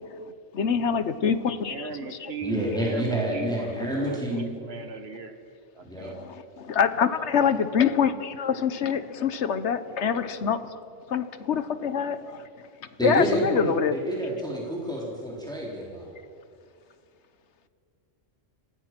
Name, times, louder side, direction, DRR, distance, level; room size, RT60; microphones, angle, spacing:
voice 1, 0.5-1.9 2.2-2.3 6.0-10.7 11.1-12.5 13.0-13.9, left 7 dB, 65° left, 13 dB, 1.3 m, -25 dB
voice 2, 1.7-5.3 5.7-6.1, right 3 dB, 55° right, 8 dB, 1.8 m, -37 dB
voice 3, 2.4-4.5 5.8-6.1 13.0-16.1, right 1 dB, 5° left, -3 dB, 3.6 m, -28 dB
26.0 x 18.0 x 6.0 m, 2.4 s
omnidirectional pair, 1.3 m